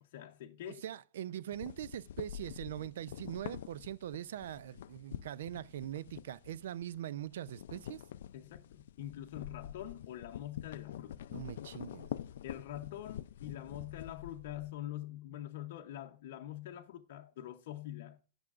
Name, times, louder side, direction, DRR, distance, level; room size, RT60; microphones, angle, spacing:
voice 1, 0.0-0.8 8.3-11.2 12.4-18.2, left 12 dB, 60° left, 0.7 m, -45 dB
voice 2, 0.7-8.0 11.3-12.1, right 11 dB, 80° right, 0.4 m, -42 dB
sound 1, 1.5-7.0 7.3-14.7, left 10 dB, 80° left, 0.4 m, -46 dB
17.0 x 6.2 x 2.4 m
supercardioid pair, 160°, 0 cm